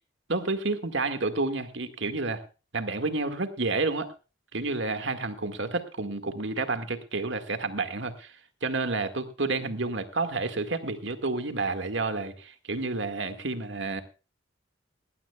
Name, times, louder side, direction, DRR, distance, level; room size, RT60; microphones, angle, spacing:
voice 1, 0.3-2.4 2.7-4.1 4.5-8.3 8.6-14.0, right 3 dB, 70° right, 8 dB, 1.9 m, -30 dB
19.5 x 16.5 x 2.3 m, 0.33 s
head